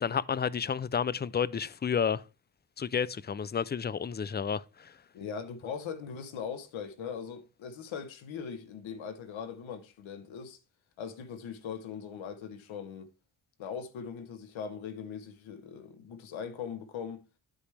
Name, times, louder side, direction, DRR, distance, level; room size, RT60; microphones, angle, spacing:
voice 1, 0.0-2.2 2.8-4.9, left 7 dB, 25° left, 0.4 m, -31 dB
voice 2, 5.1-10.6 11.0-13.1 13.6-17.2, left 7 dB, 90° left, 1.2 m, -40 dB
11.0 x 5.1 x 3.3 m
cardioid pair, 70°, 45 cm